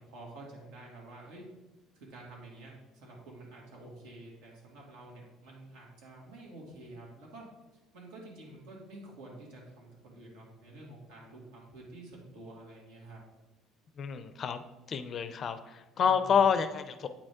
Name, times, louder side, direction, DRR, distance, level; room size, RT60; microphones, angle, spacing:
voice 1, 0.0-1.4 1.9-7.5 7.9-13.2 15.9-16.4, right 2 dB, 75° right, -2 dB, 2.4 m, -49 dB
voice 2, 14.0-14.6 14.9-17.1, left 7 dB, 35° left, 11 dB, 0.4 m, -28 dB
8.4 x 5.2 x 3.6 m, 1.1 s
cardioid pair, 160°, 0 cm